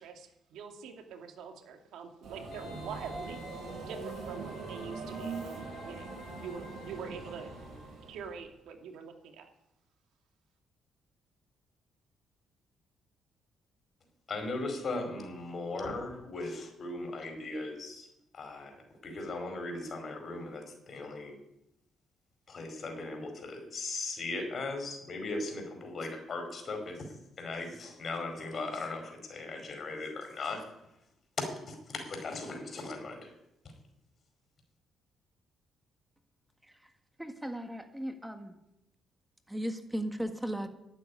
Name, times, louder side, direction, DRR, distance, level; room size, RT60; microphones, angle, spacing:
voice 1, 0.0-3.4 3.9-7.5 8.1-9.5, right 6 dB, 85° right, 4 dB, 2.4 m, -45 dB
Subway metro underground, 2.2-8.4, right 4 dB, 65° right, 7.1 m, -42 dB
Wind instrument woodwind instrument, 2.5-8.1 8.4-8.5, left 1 dB, 70° left, 4.1 m, -51 dB
voice 2, 14.3-18.1 18.3-18.7 19.0-21.3 22.5-30.6 31.4-33.3, left 3 dB, 45° left, 4 dB, 4.8 m, -38 dB
voice 3, 37.2-38.6 39.5-40.7, equal, 5° right, 6 dB, 1.6 m, -37 dB
12.5 x 8.5 x 9.8 m, 0.84 s
cardioid pair, 90°, 0 cm